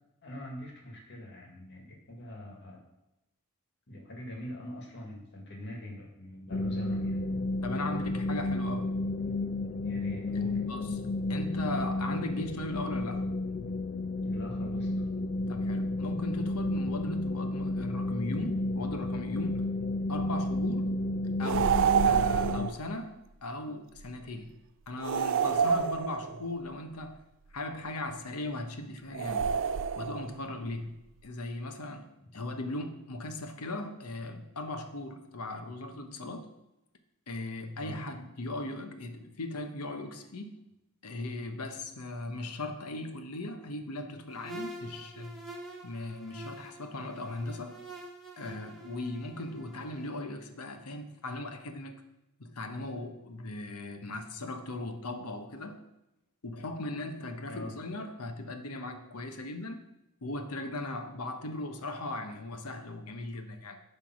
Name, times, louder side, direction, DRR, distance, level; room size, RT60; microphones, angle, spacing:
voice 1, 0.2-2.8 3.9-7.2 9.8-10.6 14.3-15.0 32.2-32.3 37.8-38.0 57.5-57.7, left 1 dB, 55° left, 0 dB, 1.9 m, -43 dB
sound 1, 6.5-22.7, left 2 dB, 35° left, 0.3 m, -32 dB
voice 2, 7.6-9.0 10.3-11.0 11.3-13.3 15.5-19.6 20.1-21.0 21.4-21.8 22.0-24.5 24.9-27.2 27.5-29.5 30.0-31.0 31.2-32.1 32.3-36.5 37.3-40.5 41.0-45.4 45.8-47.8 48.4-51.9 52.4-55.8 56.4-59.8 60.2-63.8, left 2 dB, 90° left, 7 dB, 0.9 m, -38 dB
sound 2, 21.4-22.8 25.0-26.5 29.1-30.3, right 7 dB, 60° right, 0.4 m, -27 dB
sound 3, 44.3-50.1, right 1 dB, ahead, 1.2 m, -46 dB
10.0 x 3.4 x 5.9 m, 0.93 s
head